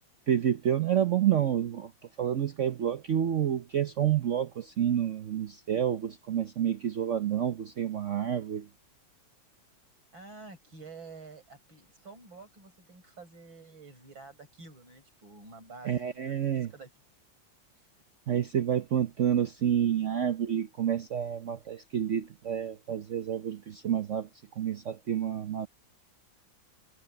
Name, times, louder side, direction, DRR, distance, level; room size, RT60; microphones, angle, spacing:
voice 1, 0.3-1.9 2.2-8.7 15.8-16.7 18.3-24.3 24.6-25.7, right 9 dB, 60° right, 0.8 m, -29 dB
voice 2, 10.1-16.9 17.7-17.8, right 4 dB, 80° right, 8.0 m, -49 dB
omnidirectional pair, 2.1 m